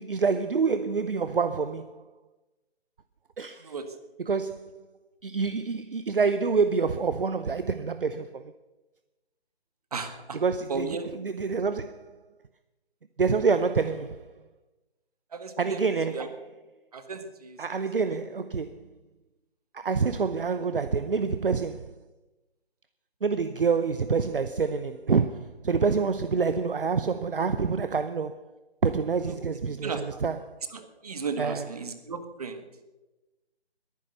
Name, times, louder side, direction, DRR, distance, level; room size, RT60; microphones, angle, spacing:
voice 1, 0.0-2.1 3.4-3.8 4.2-4.8 5.2-8.5 10.3-12.2 13.2-14.3 15.6-16.5 17.6-18.9 19.7-22.0 23.2-28.5 28.8-30.6 31.4-31.8, right 5 dB, 55° right, 0.8 m, -27 dB
voice 2, 9.9-10.4 10.7-11.1 15.3-15.8 16.1-16.3 16.9-17.6 29.8-30.2 30.7-32.6, right 4 dB, 35° right, 1.7 m, -34 dB
21.0 x 10.0 x 6.6 m
figure-of-eight pair, 155°, 33 cm